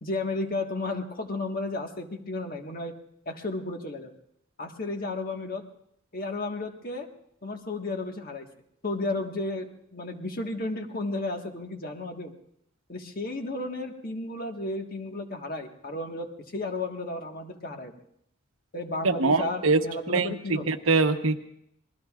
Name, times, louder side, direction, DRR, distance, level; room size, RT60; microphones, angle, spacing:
voice 1, 0.0-2.9 3.2-4.1 4.6-5.6 6.1-7.1 7.4-8.5 8.8-9.7 9.9-12.3 12.9-17.9 18.7-20.7, left 2 dB, 45° left, 4 dB, 1.6 m, -33 dB
voice 2, 19.0-19.8 20.1-21.4, right 3 dB, 90° right, 6 dB, 1.1 m, -23 dB
27.0 x 20.5 x 2.5 m, 0.73 s
head